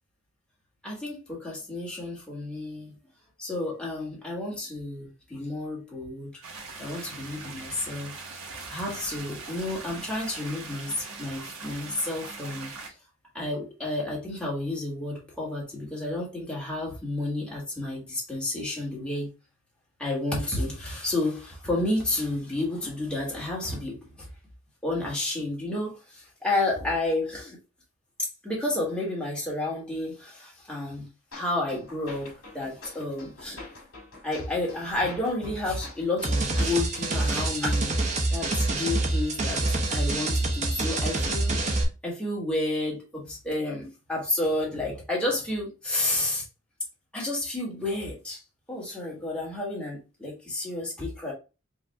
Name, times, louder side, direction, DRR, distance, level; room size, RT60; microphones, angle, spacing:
voice 1, 0.8-2.9 3.4-6.4 6.8-8.2 8.5-12.7 13.3-19.3 20.0-24.3 24.8-27.6 28.4-31.1 31.3-33.6 34.2-39.6 39.9-46.4 47.1-48.4 48.7-51.3, left 2 dB, 5° left, 1.5 m, -31 dB
sound 1, 6.4-12.9, right 4 dB, 80° right, 1.3 m, -41 dB
sound 2, 31.3-37.3, left 2 dB, 70° left, 2.0 m, -46 dB
sound 3, 36.2-41.8, right 2 dB, 30° right, 0.7 m, -26 dB
4.9 x 2.6 x 3.3 m
head